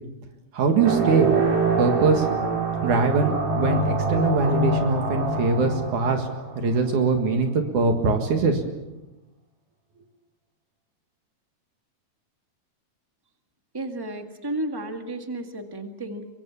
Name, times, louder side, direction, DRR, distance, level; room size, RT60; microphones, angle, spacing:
voice 1, 0.5-1.4 1.8-2.2 2.8-6.2 6.6-8.6, right 4 dB, 60° right, 5 dB, 3.1 m, -22 dB
sound 1, 0.8-6.9, right 3 dB, 85° right, 6.5 m, -25 dB
voice 2, 13.7-16.3, right 1 dB, 15° right, 5 dB, 0.9 m, -32 dB
24.5 x 23.0 x 7.1 m, 1.0 s
omnidirectional pair, 4.0 m